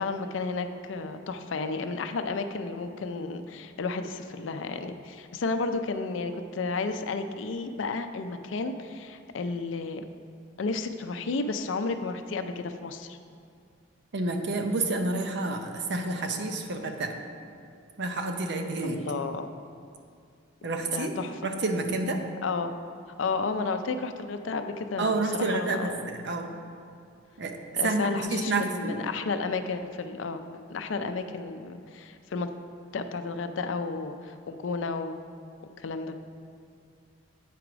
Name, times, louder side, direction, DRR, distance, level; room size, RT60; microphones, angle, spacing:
voice 1, 0.0-10.0 10.6-13.2 18.8-19.5 20.9-21.3 22.4-22.7 23.2-26.1 27.8-32.5 32.9-35.2 35.8-36.2, left 4 dB, 70° left, 8 dB, 0.4 m, -32 dB
voice 2, 14.1-17.1 18.0-19.0 20.6-21.1 21.4-22.2 25.0-26.5 27.4-27.6 27.8-29.0, right 2 dB, 60° right, 5 dB, 0.7 m, -29 dB
8.4 x 4.7 x 5.0 m, 2.4 s
head